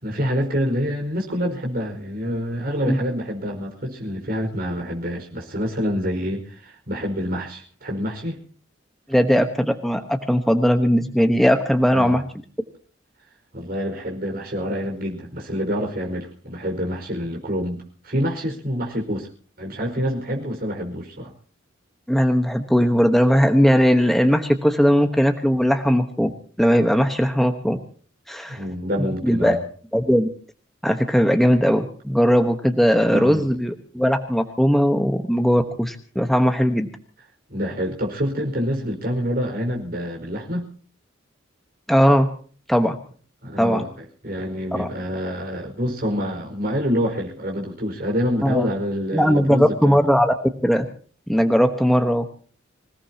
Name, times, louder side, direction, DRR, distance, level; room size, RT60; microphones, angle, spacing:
voice 1, 0.0-8.4 11.9-12.2 13.5-19.3 19.6-21.3 28.5-29.6 33.1-33.6 37.5-40.7 43.4-43.9 44.2-50.0, equal, 50° right, 0 dB, 5.0 m, -27 dB
voice 2, 9.1-12.2 22.1-26.3 26.6-27.8 28.3-28.6 29.2-29.6 29.9-30.3 30.8-36.9 41.9-42.3 42.7-43.0 43.6-43.8 44.8-44.9 48.4-48.7 49.1-50.3 50.6-50.8 51.3-52.3, equal, ahead, 6 dB, 1.1 m, -18 dB
26.0 x 17.5 x 2.9 m, 0.43 s
head